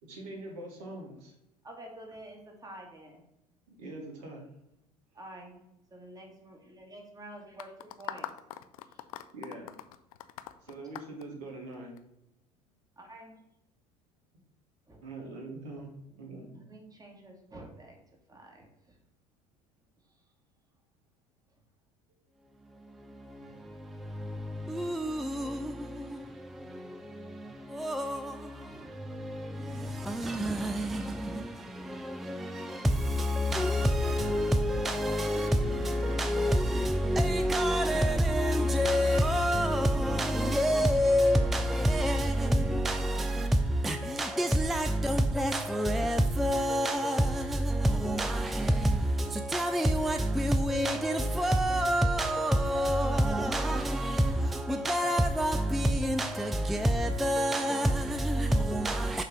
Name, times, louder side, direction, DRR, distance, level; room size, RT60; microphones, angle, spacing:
voice 1, 0.0-1.3 3.7-4.4 9.3-9.7 10.6-11.9 15.0-15.9 16.2-16.5, right 2 dB, 65° right, 1.9 m, -43 dB
voice 2, 1.6-3.3 5.1-5.6 5.9-8.3 8.8-9.1 13.0-13.4 14.9-15.0 15.8-15.9 16.3-18.0 18.3-19.0 20.0-20.2 21.5-21.6, right 1 dB, 20° right, 1.7 m, -49 dB
sound 1, 7.6-12.0, left 12 dB, 70° left, 0.4 m, -42 dB
voice 3, 22.7-59.2, equal, ahead, 0.3 m, -28 dB
6.4 x 3.3 x 5.3 m
figure-of-eight pair, 65°, 19 cm